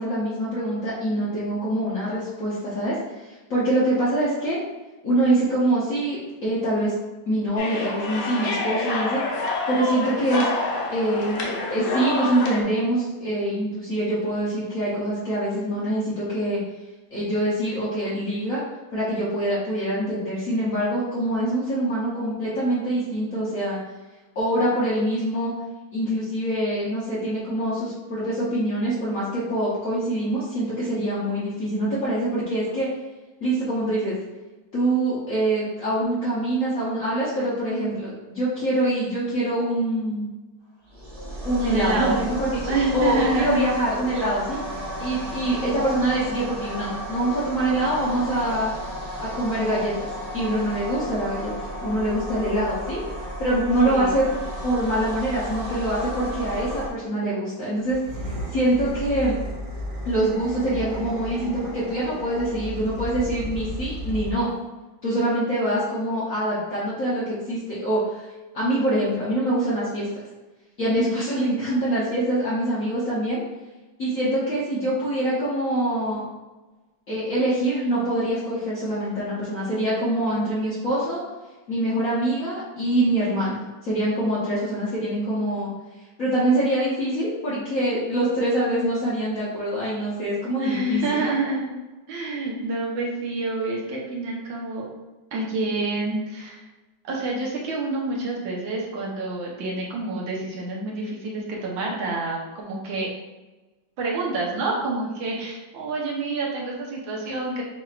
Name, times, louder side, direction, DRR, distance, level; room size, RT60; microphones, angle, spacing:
voice 1, 0.0-4.6 5.0-6.2 6.4-6.9 7.3-9.2 9.7-10.5 10.9-16.6 17.1-18.6 18.9-23.8 24.3-25.5 25.9-32.9 33.4-34.1 34.7-40.3 41.4-44.6 45.0-48.7 49.2-50.1 50.3-53.0 53.4-54.3 54.6-58.0 58.2-59.3 60.0-64.5 65.0-68.3 68.5-70.1 70.8-73.4 74.0-76.2 77.1-81.2 81.7-85.7 86.2-91.0, right 1 dB, 50° left, -9 dB, 1.3 m, -24 dB
sound 1, 7.6-12.6, left 2 dB, 80° left, 1.6 m, -27 dB
sound 2, 40.9-56.9, equal, 40° right, 1.3 m, -33 dB
voice 2, 41.6-42.2 42.7-43.6 53.8-54.2 90.6-91.7 92.1-94.9 95.3-96.6 97.1-103.1 104.0-107.6, right 2 dB, 75° right, -3 dB, 1.8 m, -27 dB
sound 3, 57.8-64.6, equal, 60° right, 1.8 m, -34 dB
7.7 x 2.8 x 2.4 m, 1.2 s
omnidirectional pair, 2.2 m